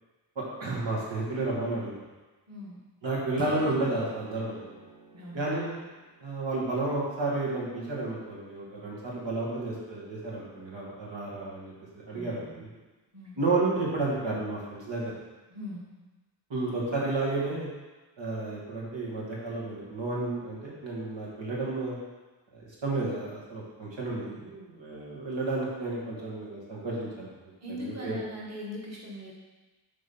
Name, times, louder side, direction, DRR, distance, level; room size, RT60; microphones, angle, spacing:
voice 1, 0.4-1.9 3.0-4.6 5.3-5.8 6.2-11.7 12.1-12.7 13.4-15.1 16.5-17.7 18.2-22.0 22.5-27.3 27.8-28.2, right 2 dB, 80° right, -5 dB, 2.0 m, -31 dB
voice 2, 2.5-2.8 5.1-5.8 12.1-12.6 13.1-13.4 15.5-15.9 27.6-29.3, left 1 dB, 35° right, -5 dB, 1.6 m, -40 dB
Strum, 3.4-7.6, right 2 dB, 10° right, 1.1 m, -47 dB
7.7 x 3.9 x 5.5 m, 1.2 s
wide cardioid pair, 100°, 43 cm